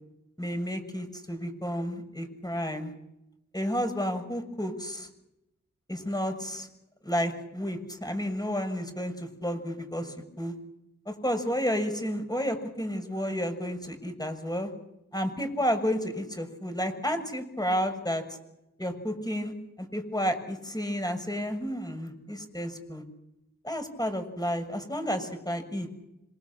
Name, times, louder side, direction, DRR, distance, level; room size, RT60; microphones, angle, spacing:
voice 1, 0.4-2.9 3.5-5.1 5.9-6.7 7.0-10.5 11.0-14.7 15.1-18.2 18.8-19.5 19.8-23.0 23.6-25.9, equal, 15° left, 7 dB, 6.7 m, -31 dB
26.5 x 24.5 x 7.3 m, 0.86 s
cardioid pair, 45°, 29 cm